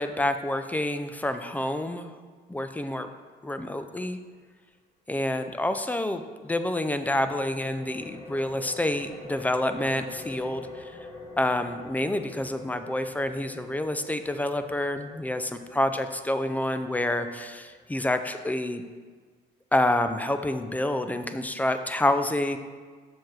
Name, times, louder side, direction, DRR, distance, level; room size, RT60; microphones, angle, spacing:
voice 1, 0.0-2.1 2.5-3.1 3.4-4.2 5.1-11.0 11.4-18.8 19.7-22.6, left 1 dB, 10° left, 9 dB, 0.5 m, -28 dB
sound 1, 7.1-18.5, left 2 dB, 30° left, 1.2 m, -45 dB
7.1 x 6.3 x 4.7 m, 1.5 s
cardioid pair, 110°, 17 cm